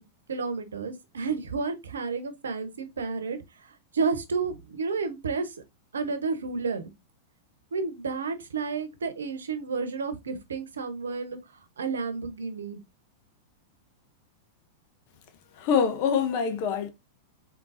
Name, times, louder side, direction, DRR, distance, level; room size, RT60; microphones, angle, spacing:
voice 1, 0.3-3.4 3.9-5.5 5.9-6.8 7.7-11.4 11.8-12.8, right 4 dB, 85° right, 0.9 m, -31 dB
voice 2, 15.6-16.9, left 6 dB, 55° left, 1.1 m, -25 dB
4.4 x 3.9 x 2.6 m
hypercardioid pair, 100°, 0 cm